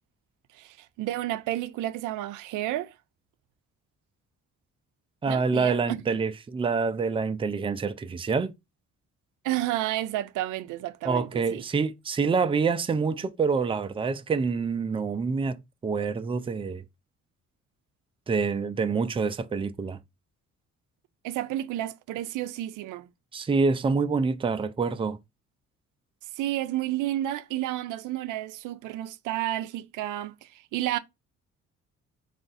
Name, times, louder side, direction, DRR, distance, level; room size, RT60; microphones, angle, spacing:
voice 1, 0.5-2.9 5.3-6.0 9.4-11.6 21.2-23.1 26.4-31.0, right 14 dB, 85° right, 0.5 m, -31 dB
voice 2, 5.2-8.5 11.0-16.8 18.3-20.0 23.3-25.2, right 5 dB, 20° right, 0.4 m, -26 dB
3.5 x 2.5 x 4.0 m
cardioid pair, 90°, 30 cm